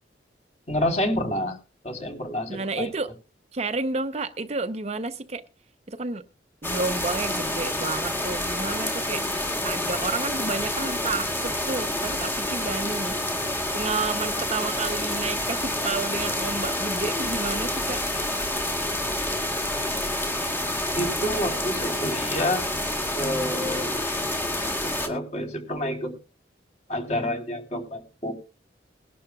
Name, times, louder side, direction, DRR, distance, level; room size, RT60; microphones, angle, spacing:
voice 1, 0.7-1.6 1.8-2.9 20.9-22.6 23.1-23.9 24.8-26.1 26.9-28.3, left 1 dB, 40° left, 4.1 m, -28 dB
voice 2, 2.5-3.1 3.5-5.4 5.9-6.2 6.6-9.2 9.6-13.2 13.7-18.0, right 3 dB, 35° right, 0.7 m, -30 dB
sound 1, 6.6-25.1, left 1 dB, 10° left, 1.9 m, -28 dB
21.5 x 11.5 x 2.3 m
head